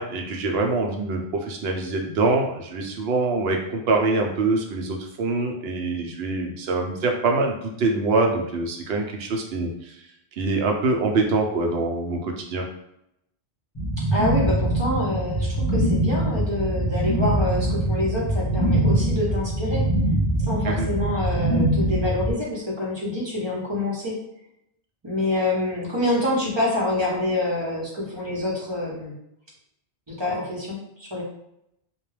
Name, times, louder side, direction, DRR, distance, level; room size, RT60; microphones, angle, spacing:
voice 1, 0.0-9.9 10.4-12.7 20.6-20.9, right 3 dB, 70° right, 2 dB, 0.8 m, -24 dB
sound 1, 13.7-22.3, right 1 dB, 25° left, 0.6 m, -23 dB
voice 2, 14.0-19.9 20.5-24.2 25.0-29.2 30.1-31.2, left 1 dB, 30° right, -5 dB, 0.7 m, -26 dB
2.3 x 2.1 x 3.2 m, 0.79 s
omnidirectional pair, 1.1 m